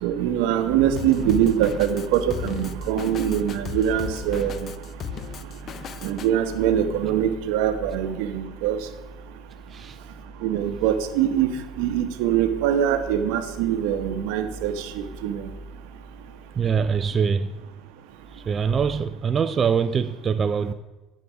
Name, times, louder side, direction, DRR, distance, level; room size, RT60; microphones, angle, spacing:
voice 1, 0.0-4.7 6.0-8.8 10.4-11.5 11.8-15.5, right 9 dB, 85° right, 0.8 m, -23 dB
Drum kit, 1.0-6.3, left 9 dB, 45° left, 0.3 m, -36 dB
voice 2, 16.6-17.5 18.3-20.7, right 6 dB, 30° right, 0.3 m, -23 dB
9.8 x 4.8 x 6.0 m
cardioid pair, 120°, 0 cm